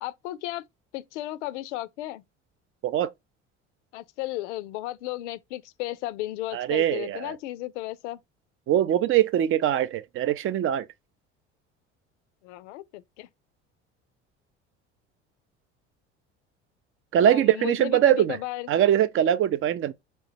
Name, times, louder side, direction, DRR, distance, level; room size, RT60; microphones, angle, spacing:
voice 1, 0.0-0.6 0.9-2.2 3.9-8.2 12.4-13.3 17.2-18.7, left 16 dB, 75° left, 0.5 m, -34 dB
voice 2, 6.5-7.4 8.7-10.9 17.1-18.4 18.7-19.9, right 11 dB, 40° right, 0.4 m, -22 dB
4.2 x 2.1 x 2.7 m
hypercardioid pair, 60°, 35 cm